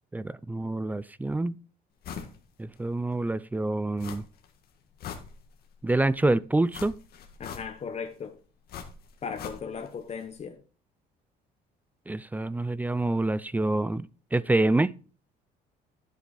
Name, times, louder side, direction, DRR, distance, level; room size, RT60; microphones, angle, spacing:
voice 1, 0.1-1.5 2.6-4.2 5.8-7.0 12.1-14.9, right 2 dB, 10° right, 0.4 m, -27 dB
sound 1, 2.0-2.4 2.8-2.9 4.0-4.5 4.8-5.8 6.7-8.0 8.7-9.9 10.2-10.3, left 7 dB, 65° left, 1.8 m, -41 dB
voice 2, 7.4-8.4 9.2-10.6, left 6 dB, 40° left, 1.3 m, -37 dB
10.5 x 7.4 x 4.1 m
cardioid pair, 110°, 17 cm